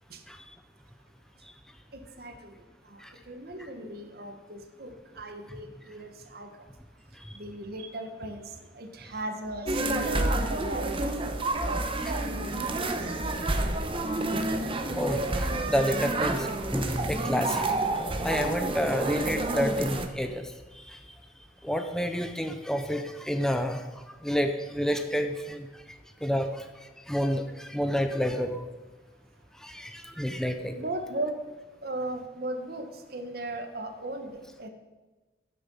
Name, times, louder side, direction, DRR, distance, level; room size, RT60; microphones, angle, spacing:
voice 1, 1.9-6.7 7.3-12.8 13.0-13.2 30.7-31.4 31.8-34.7, right 1 dB, 60° right, 6 dB, 1.4 m, -38 dB
sound 1, 9.7-20.1, right 2 dB, 30° right, 1.0 m, -29 dB
voice 2, 14.9-21.2 21.6-28.7 29.5-30.8, equal, 5° left, 6 dB, 0.6 m, -30 dB
12.0 x 9.4 x 5.6 m, 1.2 s
head